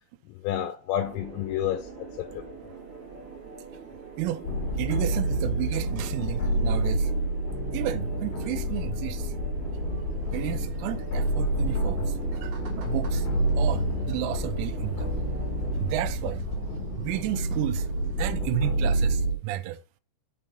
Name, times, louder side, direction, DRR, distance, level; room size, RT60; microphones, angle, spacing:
voice 1, 0.3-2.5, left 11 dB, 85° left, 3.3 m, -30 dB
sound 1, 1.0-16.0, right 5 dB, 35° right, 2.5 m, -44 dB
sound 2, 4.4-19.4, right 1 dB, 60° left, 3.4 m, -28 dB
voice 2, 4.8-7.1 7.7-9.3 10.3-13.3 13.5-15.1 15.8-16.4 17.0-17.9 18.2-19.8, right 14 dB, 85° right, 3.2 m, -32 dB
sound 3, 10.2-18.2, right 2 dB, 60° right, 2.5 m, -44 dB
7.7 x 4.2 x 5.8 m
omnidirectional pair, 6.0 m